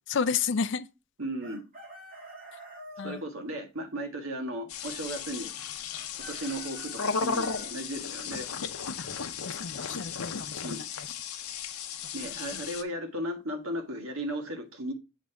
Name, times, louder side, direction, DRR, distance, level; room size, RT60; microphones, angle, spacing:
voice 1, 0.1-0.9 3.0-3.2 9.0-9.1 9.4-11.1 12.5-12.6, left 6 dB, 55° left, 0.5 m, -31 dB
voice 2, 1.2-1.6 3.0-5.5 6.1-8.5 10.6-10.8 12.1-14.9, right 1 dB, 75° right, 1.6 m, -36 dB
Chicken rooster, 1.4-3.2 5.9-7.7, equal, 40° right, 2.5 m, -47 dB
sound 1, 4.7-12.8, left 6 dB, 90° left, 0.8 m, -35 dB
7.4 x 3.9 x 4.5 m
head